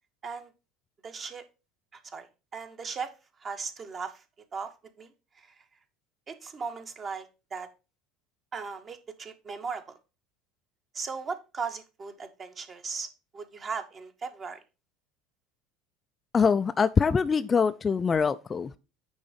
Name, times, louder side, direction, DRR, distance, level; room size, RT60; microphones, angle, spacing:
voice 1, 1.0-1.4 1.9-3.1 3.4-4.2 4.5-4.7 5.0-5.1 5.4-5.5 6.3-7.3 7.5-7.7 8.5-9.9 10.9-13.1 13.3-14.6, right 5 dB, 30° right, 1.1 m, -37 dB
voice 2, 16.3-18.8, left 5 dB, 25° left, 0.3 m, -24 dB
9.5 x 3.5 x 5.1 m
figure-of-eight pair, 70°, 0 cm